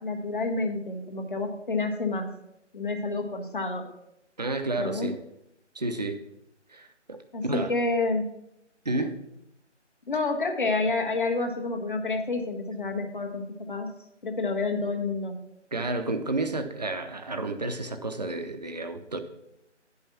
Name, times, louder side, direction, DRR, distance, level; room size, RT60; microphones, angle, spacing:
voice 1, 0.0-2.3 2.7-3.9 4.8-5.1 7.3-8.2 10.1-13.9 14.2-15.4, left 3 dB, 45° left, 4 dB, 1.4 m, -29 dB
voice 2, 4.4-5.2 5.7-6.2 6.7-7.7 8.8-9.2 15.7-19.2, right 2 dB, 35° right, 7 dB, 0.7 m, -31 dB
10.0 x 5.6 x 5.8 m, 0.82 s
figure-of-eight pair, 170°, 36 cm